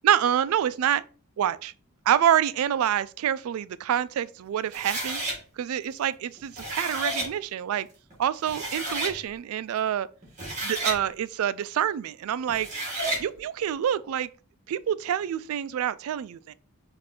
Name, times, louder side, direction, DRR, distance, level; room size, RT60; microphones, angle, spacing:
voice 1, 0.0-1.0 1.4-1.7 2.1-5.2 5.6-7.9 8.2-10.1 10.6-12.7 13.2-14.3 14.7-16.5, right 10 dB, 80° right, 0.3 m, -26 dB
sound 1, 4.7-5.4 6.4-7.3 8.1-8.2 8.5-9.2 10.2-11.0 12.5-13.2, right 2 dB, 35° right, 1.7 m, -31 dB
4.8 x 2.5 x 4.2 m
head